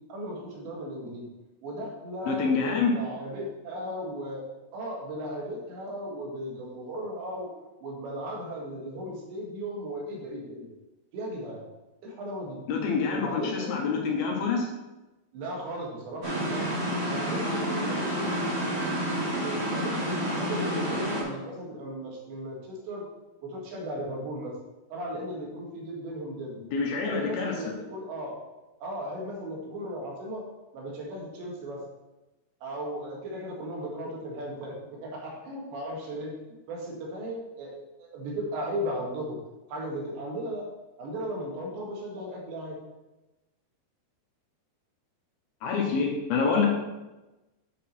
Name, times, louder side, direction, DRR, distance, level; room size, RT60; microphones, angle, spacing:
voice 1, 0.1-1.3 1.6-4.5 4.7-7.5 7.8-10.7 11.1-11.6 12.0-12.6 13.2-13.7 15.3-16.8 17.0-18.4 19.4-23.1 23.4-24.5 24.9-26.6 27.0-28.4 28.8-30.4 30.7-31.8 32.6-36.3 36.7-39.4 39.7-40.7 41.0-42.8, equal, 90° right, -2 dB, 4.0 m, -36 dB
voice 2, 2.3-3.0 12.7-14.7 26.7-27.8 45.6-46.7, left 5 dB, 70° left, 1 dB, 2.7 m, -26 dB
sound 1, 16.2-21.2, equal, 70° right, 0.6 m, -29 dB
8.5 x 5.8 x 4.3 m, 1.1 s
omnidirectional pair, 5.0 m